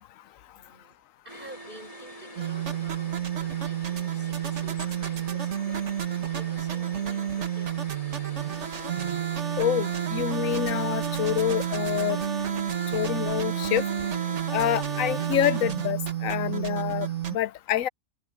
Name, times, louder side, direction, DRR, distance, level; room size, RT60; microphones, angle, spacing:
voice 1, 0.6-1.0 1.2-7.8, right 1 dB, 40° right, 6.1 m, -49 dB
sound 1, 1.3-15.6, right 1 dB, 25° left, 1.7 m, -42 dB
sound 2, 2.4-17.4, right 10 dB, 60° right, 1.6 m, -30 dB
voice 2, 9.6-12.2 12.9-13.8 14.5-17.9, left 12 dB, 80° left, 1.0 m, -27 dB
omnidirectional pair, 1.4 m